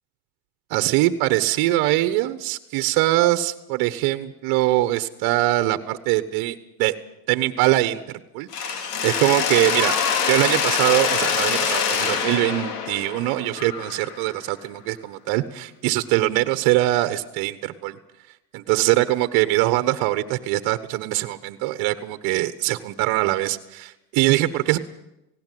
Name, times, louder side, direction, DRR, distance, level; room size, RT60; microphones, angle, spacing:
voice 1, 0.7-6.9 7.3-8.0 8.3-9.9 10.3-18.0 18.5-24.8, right 17 dB, 50° right, 12 dB, 1.3 m, -22 dB
Mechanisms, 8.5-14.4, left 7 dB, 90° left, 2.6 m, -24 dB
18.5 x 17.0 x 9.3 m, 0.89 s
supercardioid pair, 130°, 46 cm